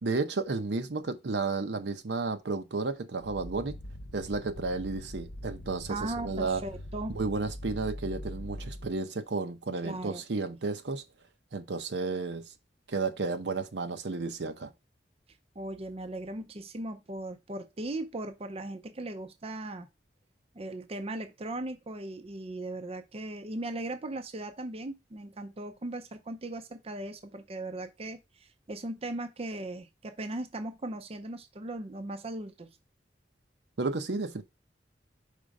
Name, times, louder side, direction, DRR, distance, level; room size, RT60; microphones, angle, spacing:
voice 1, 0.0-3.8 4.1-6.6 7.1-11.0 11.5-12.4 12.9-14.7 33.8-34.4, right 3 dB, 75° right, 0.7 m, -32 dB
sound 1, 3.2-9.0, left 1 dB, 60° left, 0.9 m, -42 dB
voice 2, 5.9-7.2 9.8-10.2 15.6-19.9 20.5-32.7, right 2 dB, 35° right, 0.6 m, -38 dB
5.0 x 3.7 x 5.2 m
head